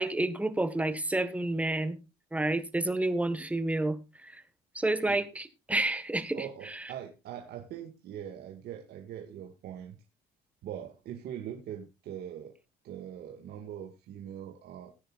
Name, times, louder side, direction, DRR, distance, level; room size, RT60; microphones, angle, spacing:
voice 1, 0.0-2.0 2.3-4.4 4.7-6.8, right 2 dB, 10° right, 11 dB, 1.7 m, -30 dB
voice 2, 6.3-10.0 10.6-12.5 12.8-14.9, right 10 dB, 70° right, 3 dB, 2.0 m, -42 dB
18.5 x 10.0 x 2.5 m, 0.26 s
cardioid pair, 110°, 17 cm